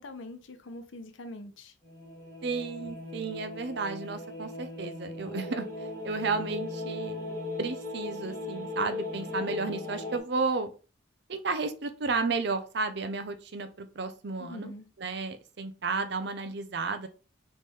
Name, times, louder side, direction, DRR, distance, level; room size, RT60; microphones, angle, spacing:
voice 1, 0.0-1.7 14.4-14.9, left 1 dB, 75° left, 0.6 m, -43 dB
sound 1, 1.8-10.2, left 2 dB, 15° left, 1.1 m, -38 dB
voice 2, 2.4-7.2 7.6-10.7 11.3-14.7 15.0-17.1, right 4 dB, 60° right, 0.6 m, -33 dB
3.6 x 3.2 x 4.2 m
head